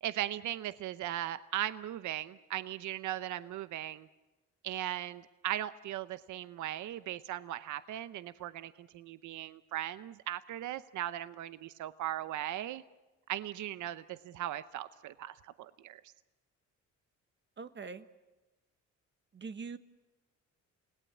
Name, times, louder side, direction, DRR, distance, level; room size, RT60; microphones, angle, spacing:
voice 1, 0.0-4.1 4.6-12.8 13.3-16.0, right 12 dB, 75° right, 13 dB, 0.8 m, -38 dB
voice 2, 17.6-18.1 19.3-19.8, right 5 dB, 35° right, 10 dB, 1.3 m, -42 dB
29.5 x 18.0 x 8.4 m, 1.1 s
cardioid pair, 90°, 30 cm